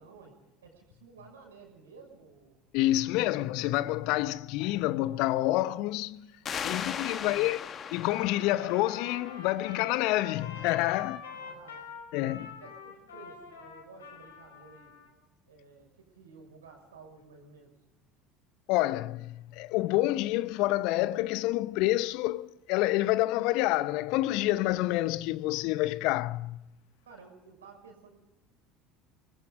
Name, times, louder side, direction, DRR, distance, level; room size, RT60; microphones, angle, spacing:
voice 1, 0.0-2.6 3.2-3.4 4.0-4.1 7.1-7.6 11.0-11.8 12.2-14.9 15.5-17.7 27.0-28.1, right 4 dB, 80° right, 6.0 m, -53 dB
voice 2, 2.7-6.3 6.6-7.6 7.9-11.2 12.1-12.5 18.7-26.6, left 17 dB, 60° left, 0.7 m, -28 dB
sound 1, 6.5-9.8, left 7 dB, 40° left, 1.6 m, -38 dB
Trumpet, 8.0-15.1, left 5 dB, 80° left, 4.7 m, -45 dB
27.0 x 19.5 x 4.9 m
figure-of-eight pair, 65°, 0 cm